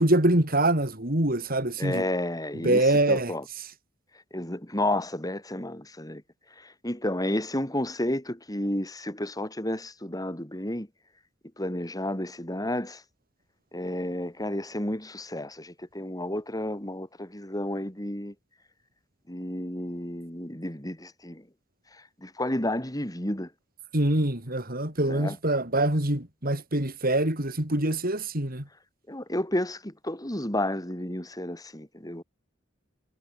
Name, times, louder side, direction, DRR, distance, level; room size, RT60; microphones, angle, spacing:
voice 1, 0.0-2.0 2.6-3.3 23.9-28.6, right 1 dB, 50° right, 5.6 m, -24 dB
voice 2, 1.8-3.4 4.3-6.2 6.6-10.9 11.6-13.0 13.7-18.3 19.3-21.4 22.2-23.5 25.1-25.4 29.1-32.2, left 1 dB, 20° left, 6.3 m, -31 dB
head